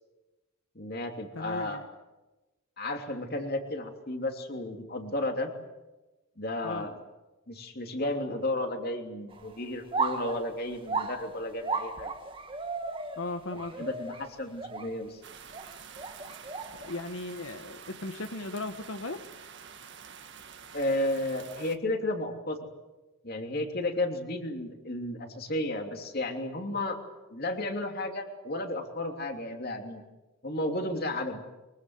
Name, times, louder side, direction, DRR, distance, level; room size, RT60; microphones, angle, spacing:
voice 1, 0.7-1.8 2.8-5.5 6.4-6.9 7.5-12.1 13.8-15.2 20.7-22.6 23.2-27.0 27.3-30.0 30.4-31.4, left 1 dB, 45° left, 4 dB, 3.1 m, -33 dB
voice 2, 1.3-1.8 6.6-6.9 13.2-13.9 16.8-19.3, left 2 dB, 70° left, 7 dB, 1.2 m, -37 dB
sound 1, 9.3-9.6 9.9-14.9 15.5-16.9, right 4 dB, 25° right, 1.8 m, -35 dB
sound 2, 15.2-21.8, right 7 dB, 55° right, 1.7 m, -48 dB
24.0 x 23.5 x 8.0 m, 1.1 s
head